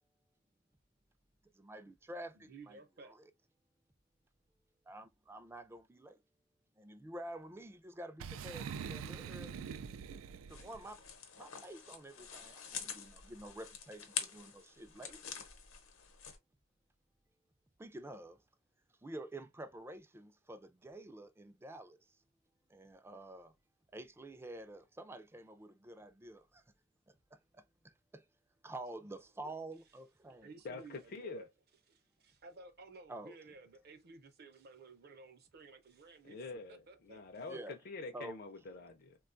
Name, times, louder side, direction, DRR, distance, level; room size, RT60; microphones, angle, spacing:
voice 1, 1.6-3.2 4.9-6.2 6.8-9.6 10.5-11.0 11.4-15.2 17.8-18.4 19.0-22.0 22.7-23.5 23.9-26.6 27.3-27.6 28.1-28.2 28.6-30.5 33.1-33.4 37.5-37.7 38.1-38.4, right 1 dB, 10° right, 0.3 m, -49 dB
voice 2, 2.3-3.1 29.4-29.5 30.4-31.5 31.9-36.4 36.7-37.2, right 3 dB, 55° right, 0.6 m, -55 dB
Boom, 8.2-10.9, right 7 dB, 90° right, 0.3 m, -44 dB
sound 1, 10.5-16.4, left 7 dB, 85° left, 0.8 m, -46 dB
voice 3, 30.6-31.4 36.2-39.2, left 3 dB, 50° left, 0.5 m, -46 dB
3.6 x 2.2 x 2.5 m
head